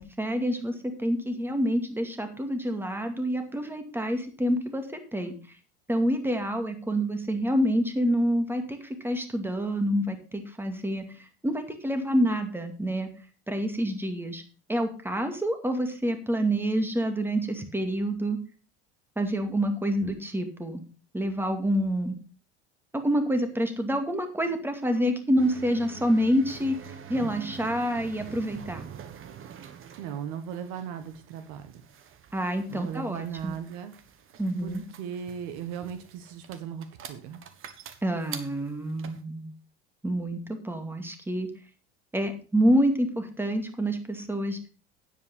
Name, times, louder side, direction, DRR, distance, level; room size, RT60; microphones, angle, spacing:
voice 1, 0.0-4.9 5.1-5.4 5.9-11.0 11.4-13.1 13.5-14.4 14.7-18.4 19.2-20.8 21.1-22.1 22.9-26.8 27.1-28.9 32.3-33.5 34.4-34.8 38.0-39.5 40.0-41.5 42.1-44.6, equal, 5° right, 6 dB, 2.3 m, -27 dB
sound 1, 25.4-39.2, right 8 dB, 40° right, 1.5 m, -45 dB
voice 2, 30.0-31.7 32.7-33.9 34.6-37.4, right 8 dB, 60° right, 10 dB, 1.5 m, -37 dB
9.5 x 8.3 x 5.4 m, 0.37 s
hypercardioid pair, 90°, 33 cm